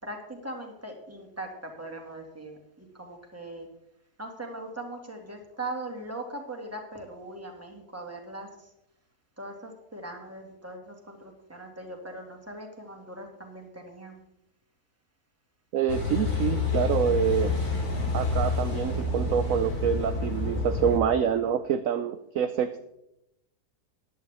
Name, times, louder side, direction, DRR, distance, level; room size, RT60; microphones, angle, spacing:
voice 1, 0.0-3.7 4.2-8.7 9.4-14.2, right 2 dB, 10° right, 2 dB, 2.0 m, -40 dB
voice 2, 15.7-17.5 18.1-22.9, right 8 dB, 65° right, 10 dB, 0.9 m, -26 dB
Car passing by / Idling / Accelerating revving vroom, 15.9-21.0, left 3 dB, 65° left, 2.9 m, -28 dB
14.5 x 11.0 x 3.5 m, 0.85 s
omnidirectional pair, 1.7 m